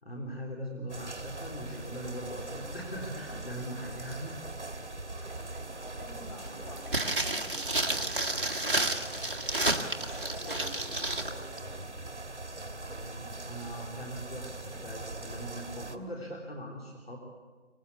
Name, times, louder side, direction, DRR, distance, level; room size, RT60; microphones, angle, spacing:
voice 1, 0.0-4.3 4.9-5.1 13.0-17.2, equal, 55° left, 0 dB, 3.5 m, -41 dB
sound 1, 0.9-16.0, right 2 dB, 70° right, 1.9 m, -42 dB
sound 2, 1.6-8.6, right 1 dB, 15° right, 2.8 m, -52 dB
voice 2, 5.6-9.7 10.3-12.0, left 1 dB, 30° left, 0 dB, 5.7 m, -49 dB
sound 3, 6.9-11.3 11.6-11.7, right 2 dB, 45° right, 1.6 m, -31 dB
24.5 x 19.0 x 8.3 m, 1.4 s
figure-of-eight pair, 170°, 36 cm